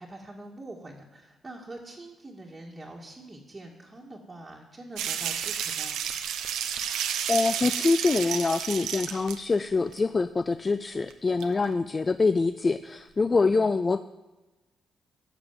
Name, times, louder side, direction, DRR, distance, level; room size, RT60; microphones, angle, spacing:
voice 1, 0.0-5.9 13.5-13.7, right 2 dB, 20° right, -3 dB, 1.9 m, -44 dB
sound 1, 5.0-9.5 9.9-10.0 11.1-11.2 11.4-11.5, right 9 dB, 85° right, 0.9 m, -31 dB
voice 2, 7.3-14.0, left 3 dB, 30° left, 12 dB, 0.4 m, -25 dB
12.5 x 6.8 x 7.2 m, 1.1 s
cardioid pair, 90°, 0 cm